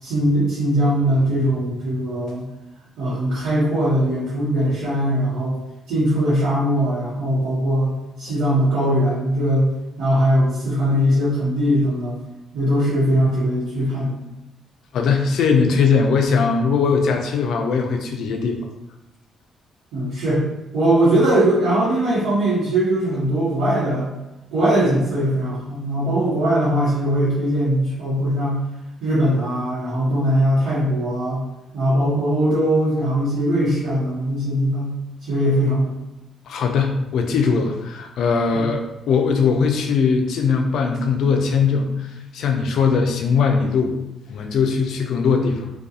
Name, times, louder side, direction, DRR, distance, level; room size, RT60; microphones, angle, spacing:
voice 1, 0.0-2.5 3.0-5.6 5.9-12.2 12.5-14.2 19.9-20.4 20.7-24.1 24.5-28.6 29.0-31.4 31.7-34.9 35.2-36.0 38.5-38.7, right 1 dB, 85° right, -11 dB, 0.9 m, -20 dB
voice 2, 14.9-18.6 36.5-43.9 44.3-45.7, left 5 dB, 75° left, 4 dB, 0.4 m, -20 dB
2.3 x 2.2 x 2.7 m, 0.92 s
cardioid pair, 90°, 0 cm